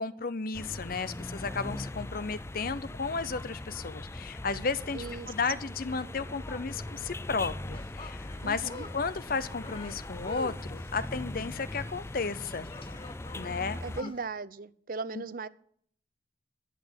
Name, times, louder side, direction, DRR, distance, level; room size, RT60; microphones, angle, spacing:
voice 1, 0.0-12.7 13.4-14.1, left 4 dB, 55° left, 0.8 m, -34 dB
sound 1, 0.5-14.0, left 1 dB, 15° left, 0.4 m, -40 dB
voice 2, 4.9-5.3 8.4-8.9 13.8-15.5, right 4 dB, 50° right, 0.7 m, -38 dB
sound 2, 7.7-14.3, left 2 dB, 30° left, 1.0 m, -47 dB
11.0 x 8.3 x 9.6 m
head